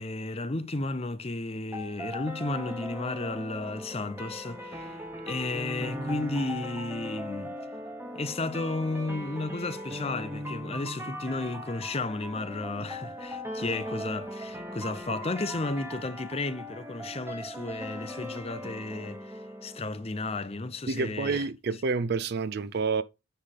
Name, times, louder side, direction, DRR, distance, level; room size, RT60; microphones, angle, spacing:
voice 1, 0.0-7.5 8.1-21.5, left 2 dB, 30° left, 0.6 m, -33 dB
sound 1, 1.7-20.7, equal, 10° right, 1.1 m, -39 dB
voice 2, 20.9-23.0, right 4 dB, 50° right, 0.4 m, -28 dB
9.8 x 3.3 x 5.9 m
head